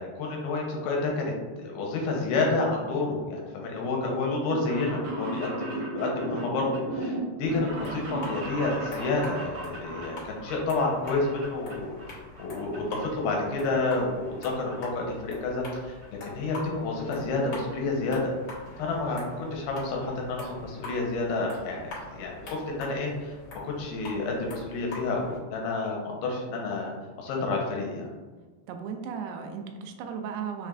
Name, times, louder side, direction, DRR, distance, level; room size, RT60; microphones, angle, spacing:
voice 1, 0.0-16.0 16.2-18.3 18.8-23.4 23.6-26.9 27.2-28.1, left 3 dB, 80° left, -1 dB, 2.6 m, -29 dB
sound 1, 4.3-12.1 12.4-13.1 13.4-14.5 14.7-14.8 15.7-16.0 16.4-16.5 16.8-17.0 17.4-17.5 17.7-17.8, right 2 dB, 60° right, 1.6 m, -36 dB
sound 2, 7.4-25.4, left 2 dB, 65° left, 1.4 m, -44 dB
voice 2, 28.7-30.7, right 6 dB, 90° right, 4 dB, 2.6 m, -36 dB
6.2 x 2.4 x 3.3 m, 1.3 s
omnidirectional pair, 4.6 m